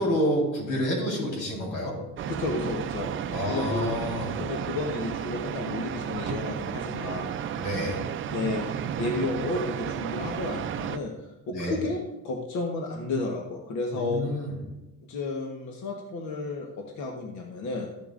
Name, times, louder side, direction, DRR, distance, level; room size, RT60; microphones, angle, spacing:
voice 1, 0.0-2.0 3.3-4.4 7.6-8.0 11.5-11.8 13.9-14.5, equal, 90° left, -2 dB, 4.2 m, -28 dB
sound 1, 2.2-11.0, right 9 dB, 40° right, 0.5 m, -33 dB
voice 2, 2.3-3.1 3.5-4.0 4.4-7.3 8.3-12.0 12.2-14.2 15.0-17.9, left 3 dB, 75° left, 1 dB, 1.3 m, -32 dB
14.0 x 10.5 x 2.6 m, 1.0 s
cardioid pair, 135°, 30 cm